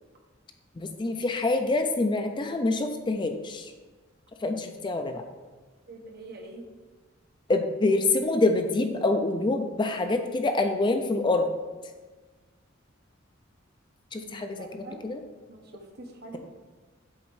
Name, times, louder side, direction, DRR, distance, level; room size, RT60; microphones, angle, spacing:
voice 1, 0.8-3.7 4.4-5.2 7.5-11.5 14.1-15.2, left 2 dB, 25° left, 6 dB, 0.4 m, -26 dB
voice 2, 5.9-6.6 14.2-15.0 15.5-16.4, right 2 dB, 55° right, 2 dB, 1.0 m, -45 dB
7.3 x 4.1 x 4.7 m, 1.3 s
head